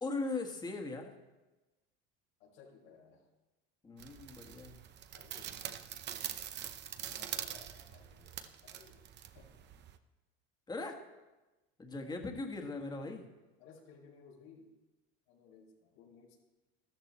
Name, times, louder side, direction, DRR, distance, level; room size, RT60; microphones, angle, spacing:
voice 1, 0.0-1.1 3.8-4.8 10.7-11.0 11.8-13.3, left 3 dB, 15° left, 3 dB, 1.6 m, -39 dB
voice 2, 2.4-3.2 5.1-5.8 7.0-9.6 13.6-14.7 15.3-16.3, left 5 dB, 90° left, -4 dB, 4.9 m, -59 dB
sound 1, 4.0-10.0, right 10 dB, 35° right, 0.8 m, -44 dB
13.5 x 13.0 x 4.3 m, 1.1 s
supercardioid pair, 130°, 30 cm